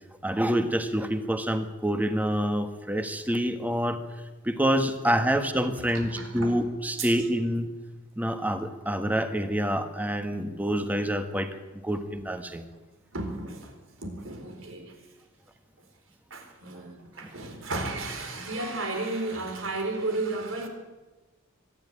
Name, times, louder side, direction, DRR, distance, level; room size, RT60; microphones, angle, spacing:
voice 1, 0.2-4.0 4.4-7.7 8.2-11.5 11.8-12.6 17.2-17.3, equal, 10° right, 8 dB, 1.4 m, -27 dB
voice 2, 5.9-6.6 7.0-7.1 13.1-15.0 16.3-20.7, right 2 dB, 75° right, 5 dB, 4.3 m, -33 dB
24.0 x 10.5 x 10.0 m, 1.2 s
head